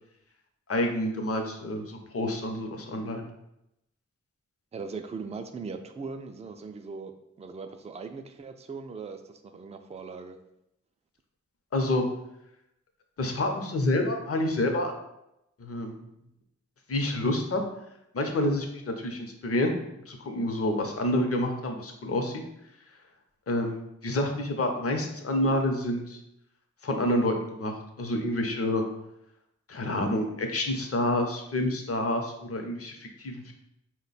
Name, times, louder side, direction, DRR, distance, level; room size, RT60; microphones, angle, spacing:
voice 1, 0.7-3.3 11.7-12.0 13.2-14.9 15.6-16.0 16.9-17.6 18.1-19.7 20.1-22.3 23.5-26.2 26.8-28.8 29.7-33.5, left 1 dB, 50° left, 3 dB, 0.7 m, -28 dB
voice 2, 4.7-10.4, right 4 dB, 20° right, 6 dB, 0.4 m, -39 dB
4.2 x 2.2 x 4.0 m, 0.84 s
cardioid pair, 55°, 30 cm